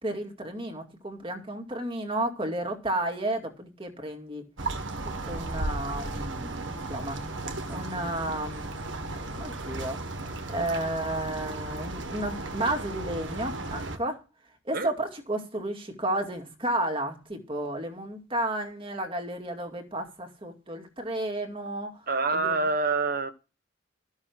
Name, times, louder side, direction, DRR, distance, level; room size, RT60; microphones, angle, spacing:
voice 1, 0.0-4.5 5.0-7.2 7.7-8.7 9.4-10.0 10.5-14.2 14.7-22.1 22.3-22.6, right 1 dB, 25° right, 2.3 m, -32 dB
sound 1, 4.6-14.0, right 2 dB, 60° right, 1.7 m, -35 dB
voice 2, 22.1-23.3, right 3 dB, 45° right, 1.3 m, -26 dB
14.0 x 6.4 x 6.0 m
head